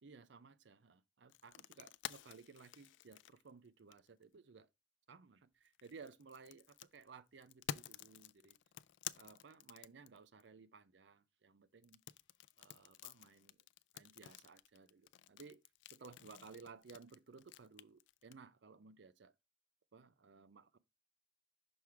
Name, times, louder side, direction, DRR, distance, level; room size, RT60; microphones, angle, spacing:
voice 1, 0.0-4.7 5.1-8.6 9.1-12.0 12.6-13.6 13.9-15.6 15.9-19.3 19.9-20.8, right 5 dB, 70° right, 0.5 m, -58 dB
sound 1, 1.3-4.2 5.6-10.4 11.8-18.3, left 11 dB, 80° left, 0.3 m, -51 dB
6.1 x 3.5 x 4.5 m
head